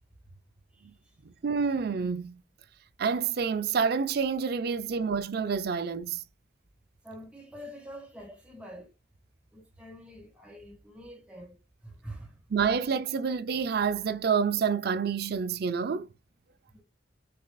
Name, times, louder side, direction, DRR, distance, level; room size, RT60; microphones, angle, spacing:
voice 1, 0.7-1.1 7.0-8.9 9.5-12.4 16.7-16.8, equal, 5° right, 1.5 m, -46 dB
voice 2, 1.2-2.4 3.0-6.2 12.5-16.1, right 6 dB, 55° right, 0.4 m, -28 dB
6.8 x 2.5 x 2.3 m
head